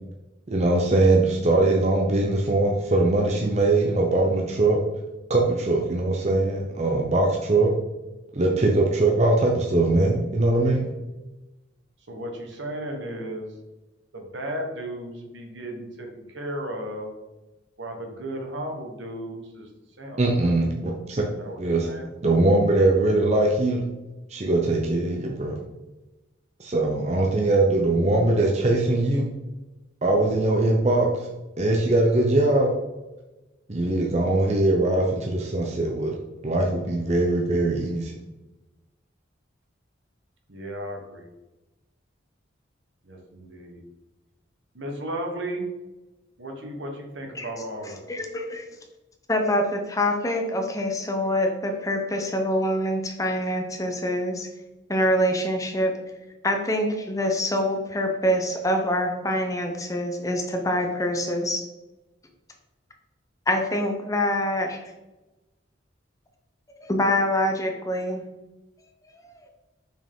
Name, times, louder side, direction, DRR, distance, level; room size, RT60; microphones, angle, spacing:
voice 1, 0.5-4.8 5.3-7.7 8.3-10.9 20.2-20.7 21.1-21.2 21.6-21.9 22.2-23.9 24.3-25.6 26.6-29.3 30.0-31.3 31.6-32.7 33.7-36.1 36.4-38.1, right 2 dB, 35° right, 1 dB, 0.6 m, -21 dB
voice 2, 12.1-13.5 14.1-17.1 17.8-19.7 20.0-20.2 21.3-22.1 40.5-41.2 43.0-43.8 44.7-45.7 46.4-48.1, right 1 dB, 75° right, 2 dB, 1.3 m, -35 dB
voice 3, 48.1-48.6 49.3-54.5 54.9-55.9 56.4-61.6 63.5-64.8 66.8-68.2 69.2-69.3, left 1 dB, 15° left, 3 dB, 0.6 m, -25 dB
5.9 x 4.6 x 3.7 m, 1.0 s
head